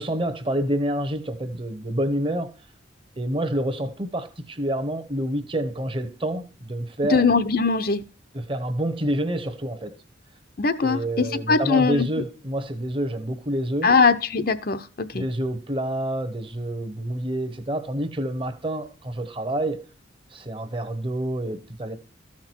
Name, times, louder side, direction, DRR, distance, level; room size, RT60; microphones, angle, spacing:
voice 1, 0.0-2.5 3.2-7.2 8.3-10.0 10.8-13.9 15.1-19.8 20.3-22.0, right 1 dB, 25° right, 1.0 m, -28 dB
voice 2, 7.1-8.0 10.6-12.1 13.8-15.2, left 4 dB, 50° left, 0.7 m, -21 dB
14.0 x 6.0 x 4.5 m
head